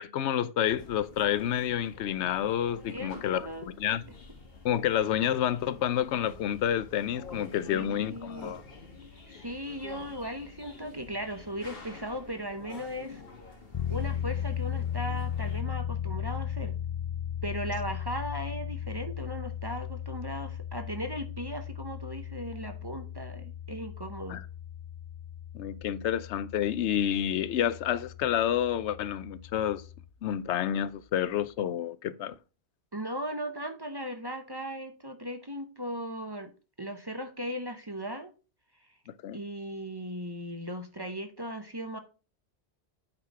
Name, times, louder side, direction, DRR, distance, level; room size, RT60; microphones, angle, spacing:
voice 1, 0.0-4.0 4.6-8.6 24.3-24.4 25.5-29.8 30.2-32.3 39.2-39.4, left 10 dB, 85° left, 0.9 m, -29 dB
sound 1, 0.7-15.6, left 3 dB, 60° left, 1.6 m, -49 dB
voice 2, 2.9-3.7 7.7-8.6 9.1-13.2 13.9-16.7 17.4-24.4 32.9-36.5 36.8-38.3 39.3-42.0, equal, 25° right, 0.7 m, -37 dB
sound 2, 13.7-30.1, left 9 dB, 40° left, 0.4 m, -37 dB
8.7 x 4.1 x 4.7 m
omnidirectional pair, 1.1 m